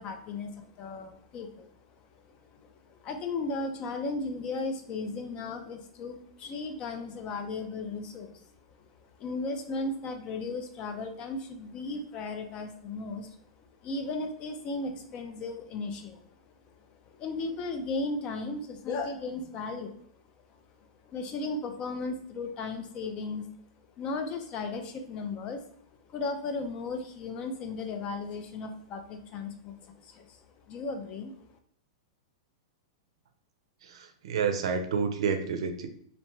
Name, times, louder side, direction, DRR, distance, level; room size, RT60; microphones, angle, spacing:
voice 1, 0.0-1.7 2.0-8.5 8.8-13.5 13.8-16.3 16.9-20.0 20.8-23.5 24.0-25.6 26.1-31.3, left 3 dB, 35° left, 6 dB, 0.4 m, -36 dB
voice 2, 33.8-35.9, right 6 dB, 75° right, 7 dB, 0.4 m, -29 dB
2.6 x 2.1 x 3.1 m, 0.65 s
hypercardioid pair, 135°, 3 cm